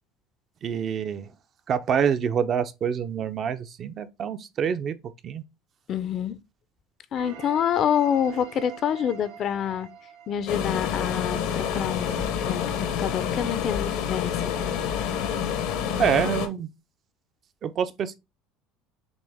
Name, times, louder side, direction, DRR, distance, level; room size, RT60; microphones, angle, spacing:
voice 1, 0.6-1.3 1.7-4.9 5.2-5.4 16.0-16.7 17.6-18.2, right 7 dB, 40° right, 0.4 m, -26 dB
voice 2, 5.9-6.3 7.1-9.9 10.3-14.6, left 9 dB, 45° left, 0.4 m, -27 dB
sound 1, 7.1-11.9, right 8 dB, 70° right, 0.7 m, -45 dB
sound 2, 10.5-16.5, left 8 dB, 75° left, 0.8 m, -28 dB
6.1 x 2.0 x 3.4 m
supercardioid pair, 125°, 0 cm